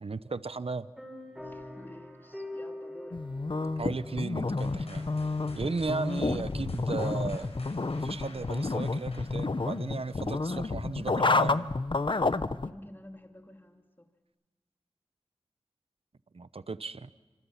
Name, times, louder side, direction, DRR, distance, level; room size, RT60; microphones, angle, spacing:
voice 1, 0.0-0.9 3.8-5.1 5.5-7.5 7.9-11.8 16.3-17.1, right 4 dB, 65° right, 14 dB, 0.8 m, -35 dB
sound 1, 1.0-9.1, left 1 dB, ahead, 7.2 m, -47 dB
voice 2, 1.4-3.2 12.6-14.1, left 1 dB, 20° left, 4 dB, 2.6 m, -50 dB
sound 2, 3.1-12.7, left 3 dB, 50° left, 0.8 m, -30 dB
sound 3, 4.6-10.5, left 2 dB, 70° left, 6.0 m, -51 dB
27.0 x 26.0 x 5.8 m, 1.3 s
wide cardioid pair, 50°, 11 cm